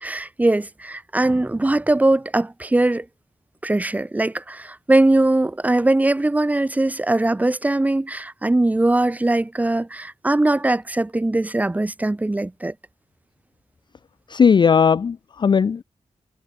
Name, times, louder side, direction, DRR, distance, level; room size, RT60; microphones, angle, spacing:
voice 1, 0.0-3.0 3.6-12.7, right 2 dB, 15° right, 0.5 m, -20 dB
voice 2, 14.3-15.8, left 6 dB, 40° left, 0.4 m, -17 dB
wide cardioid pair, 160°, 12 cm